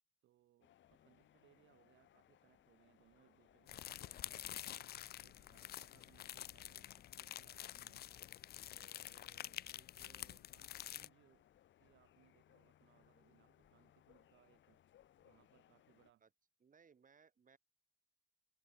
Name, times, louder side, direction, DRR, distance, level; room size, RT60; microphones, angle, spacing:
voice 1, 0.2-4.9 5.2-8.1 8.7-11.5 11.8-14.8 15.2-16.2, right 13 dB, 75° right, 1.2 m, -71 dB
sound 1, 0.6-16.1, left 12 dB, 70° left, 1.3 m, -70 dB
sound 2, 0.8-15.9, left 3 dB, 20° left, 6.8 m, -86 dB
sound 3, 3.7-11.1, left 12 dB, 50° left, 0.4 m, -49 dB
voice 2, 16.6-17.6, right 6 dB, 40° right, 5.9 m, -67 dB
cardioid pair, 90°, 20 cm